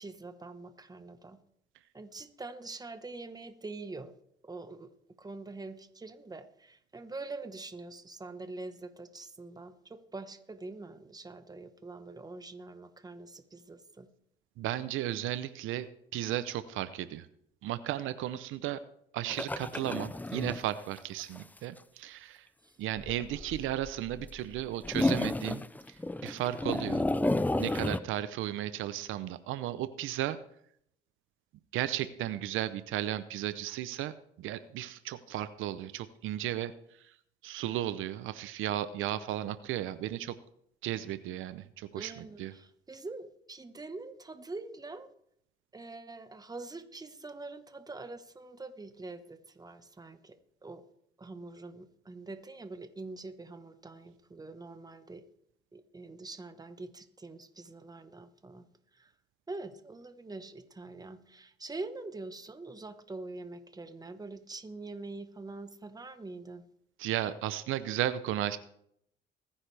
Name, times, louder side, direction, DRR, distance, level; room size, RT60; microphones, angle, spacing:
voice 1, 0.0-1.4 1.9-4.1 4.4-4.9 5.2-14.1 22.6-22.7 41.9-45.1 45.7-50.8 51.2-55.2 55.7-58.6 58.9-59.1 59.5-66.6, right 3 dB, 20° right, 10 dB, 1.2 m, -44 dB
voice 2, 14.6-15.9 16.1-17.3 17.6-18.8 19.1-22.5 22.8-26.0 26.2-27.0 27.6-30.4 31.7-34.1 34.4-36.7 37.4-40.4 40.8-42.5 67.0-68.6, right 12 dB, 85° right, 14 dB, 0.6 m, -34 dB
sound 1, 19.3-20.7 21.0-21.1 21.4-21.5 23.0-24.3 24.6-28.0, left 2 dB, 10° left, 0.5 m, -31 dB
21.0 x 9.9 x 3.4 m, 0.71 s
cardioid pair, 90°, 20 cm